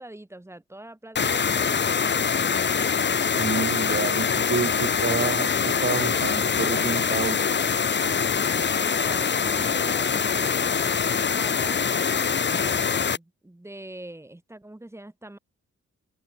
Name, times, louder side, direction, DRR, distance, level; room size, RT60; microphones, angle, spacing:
voice 1, 0.0-1.9 8.8-11.9 12.5-15.4, right 1 dB, 10° right, 6.1 m, -43 dB
sound 1, 1.2-13.2, left 6 dB, 40° left, 1.5 m, -24 dB
voice 2, 3.3-7.6, right 5 dB, 40° right, 3.8 m, -29 dB
wide cardioid pair, 150°, 29 cm